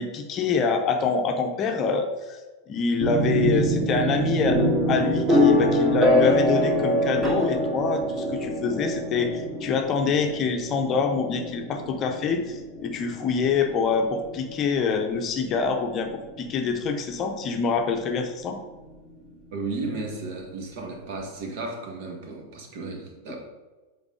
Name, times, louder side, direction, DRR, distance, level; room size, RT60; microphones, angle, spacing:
voice 1, 0.0-2.4 2.7-18.6, left 5 dB, 30° left, 5 dB, 0.7 m, -26 dB
sound 1, 3.0-16.8, equal, 20° right, 1.7 m, -25 dB
voice 2, 19.5-23.4, right 3 dB, 50° right, 1 dB, 1.6 m, -34 dB
7.3 x 4.0 x 4.9 m, 1.2 s
figure-of-eight pair, 90°, 0 cm